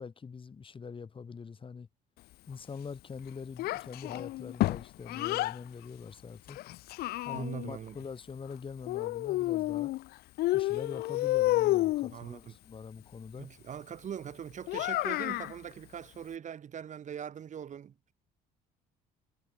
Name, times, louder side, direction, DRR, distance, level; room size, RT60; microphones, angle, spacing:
voice 1, 0.0-1.9 2.5-6.6 7.2-9.9 10.5-13.5, left 5 dB, 30° left, 4.4 m, -44 dB
Child speech kid speaking, 3.6-5.6 6.5-7.7 8.9-10.0 10.4-12.1 14.7-15.5, left 17 dB, 65° left, 0.4 m, -30 dB
voice 2, 7.3-8.0 12.1-12.6 13.4-18.1, right 8 dB, 45° right, 2.4 m, -42 dB
cardioid pair, 110°, 17 cm